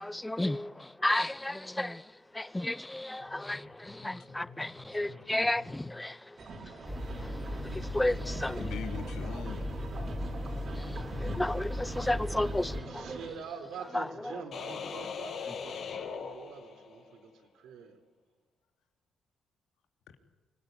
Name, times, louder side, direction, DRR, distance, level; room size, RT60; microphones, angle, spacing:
voice 1, 0.0-6.4 6.7-8.7 10.8-13.2 13.9-14.0 14.3-14.4, left 1 dB, 10° left, 0.7 m, -33 dB
voice 2, 3.2-5.9 8.5-9.6, left 7 dB, 80° left, 2.9 m, -45 dB
sound 1, 6.4-13.3, right 2 dB, 55° right, 5.2 m, -43 dB
sound 2, 6.8-12.8, left 1 dB, 5° right, 4.6 m, -37 dB
voice 3, 12.9-18.0, right 6 dB, 80° right, 3.9 m, -45 dB
sound 3, 14.5-17.1, left 6 dB, 65° left, 5.3 m, -39 dB
26.0 x 18.0 x 9.9 m
cardioid pair, 90°, 0 cm